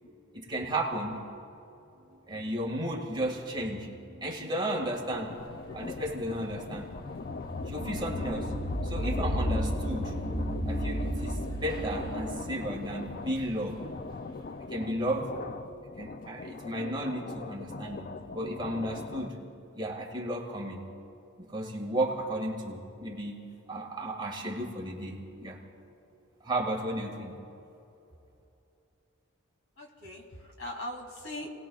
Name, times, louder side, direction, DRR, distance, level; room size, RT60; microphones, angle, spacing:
voice 1, 0.3-1.2 2.3-5.3 5.7-6.9 7.7-8.5 8.8-10.1 10.7-13.8 14.7-15.3 16.0-19.3 19.7-20.8 21.5-23.4 23.7-25.6 26.4-27.3, right 1 dB, 20° right, -1 dB, 2.0 m, -33 dB
sound 1, 5.1-19.3, left 4 dB, 40° left, 0.4 m, -41 dB
sound 2, 5.4-14.4, equal, 25° left, 1.6 m, -34 dB
voice 2, 29.8-31.5, left 1 dB, 75° left, 0 dB, 2.8 m, -41 dB
30.0 x 19.0 x 2.4 m, 2.8 s
head